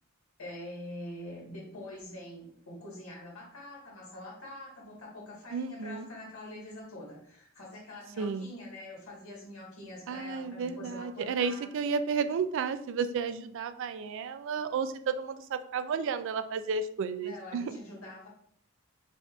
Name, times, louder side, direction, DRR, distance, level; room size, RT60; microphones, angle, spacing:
voice 1, 0.4-11.7 17.2-18.3, left 1 dB, 85° left, -3 dB, 1.5 m, -45 dB
voice 2, 5.5-6.1 8.2-8.5 10.1-17.7, right 5 dB, 60° right, 10 dB, 0.3 m, -32 dB
5.1 x 2.5 x 2.4 m, 0.63 s
head